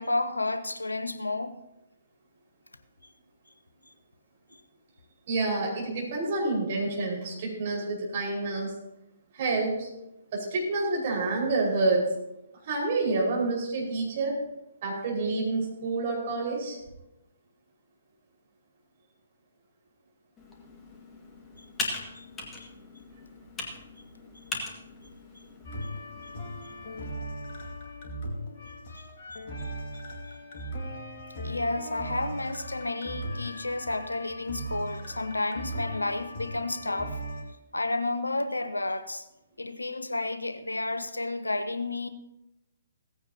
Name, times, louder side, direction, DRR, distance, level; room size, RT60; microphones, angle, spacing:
voice 1, 0.0-1.6 21.6-22.3 22.6-22.7 28.5-29.1 29.9-30.0 31.4-37.2 37.7-39.3 39.6-42.1, left 2 dB, 80° left, 0.9 m, -31 dB
voice 2, 5.3-8.7 9.3-9.9 10.3-12.1 12.7-14.4 14.8-16.8, right 3 dB, 40° right, 5.2 m, -28 dB
Computer keyboard, 20.4-27.1, left 3 dB, 15° left, 2.0 m, -40 dB
sound 1, 25.6-37.4, equal, 40° left, 2.3 m, -38 dB
17.0 x 15.5 x 2.9 m
figure-of-eight pair, 130°, 0 cm